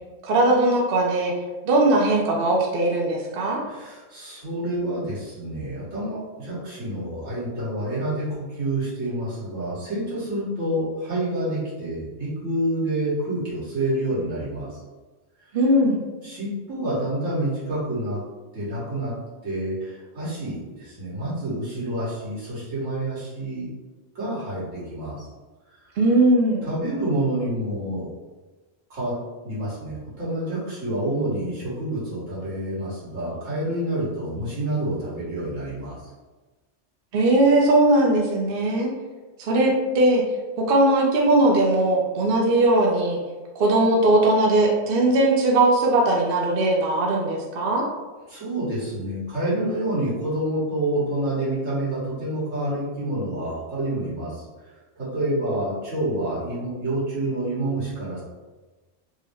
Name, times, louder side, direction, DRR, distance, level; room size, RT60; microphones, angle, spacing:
voice 1, 0.2-1.3 1.6-3.6 15.5-16.0 26.0-26.7 37.1-38.9 39.4-40.2 40.6-43.2 43.5-47.9, right 2 dB, 55° right, -1 dB, 0.7 m, -19 dB
voice 2, 3.7-14.7 16.2-18.2 18.5-19.1 19.4-23.7 24.2-25.3 26.6-28.1 28.9-29.2 29.4-36.0 48.3-54.4 55.0-58.2, right 1 dB, 80° right, -9 dB, 1.8 m, -28 dB
3.6 x 2.0 x 3.4 m, 1.2 s
omnidirectional pair, 1.3 m